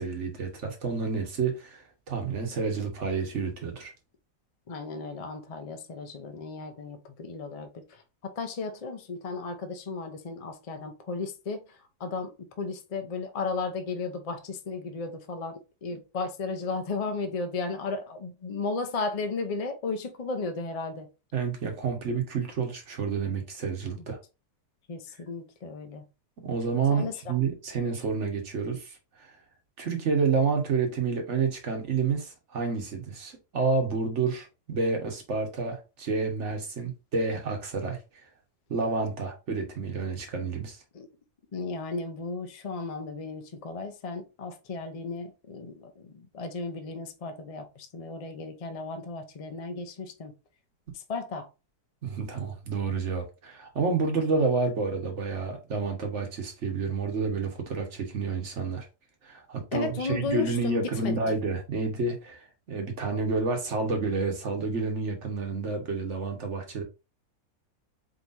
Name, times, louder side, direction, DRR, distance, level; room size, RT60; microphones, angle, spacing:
voice 1, 0.0-3.9 21.3-24.2 26.4-29.4 29.8-38.0 38.7-40.8 52.0-58.9 59.2-66.8, right 4 dB, 50° right, 1.4 m, -29 dB
voice 2, 4.7-21.1 24.9-26.0 26.9-27.3 40.9-41.1 41.5-50.3 50.9-51.5 59.7-61.2, left 4 dB, 60° left, 0.3 m, -35 dB
4.5 x 3.9 x 2.6 m
omnidirectional pair, 1.7 m